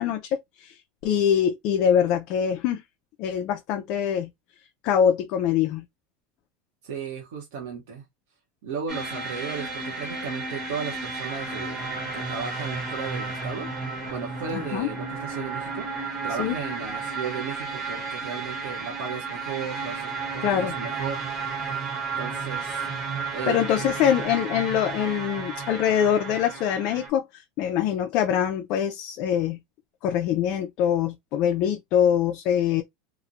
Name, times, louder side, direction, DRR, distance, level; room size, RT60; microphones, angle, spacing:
voice 1, 0.0-2.8 3.2-4.3 4.8-5.8 14.5-14.9 16.4-16.6 20.4-20.8 23.5-29.6 30.0-32.8, left 9 dB, 50° left, 0.4 m, -24 dB
voice 2, 6.8-8.0 8.6-13.7 14.1-15.9 16.2-21.2 21.6-22.9 23.3-23.6, right 6 dB, 75° right, 0.9 m, -35 dB
sound 1, 8.9-27.1, right 4 dB, 30° right, 1.1 m, -33 dB
3.0 x 2.1 x 2.4 m
supercardioid pair, 160°, 0 cm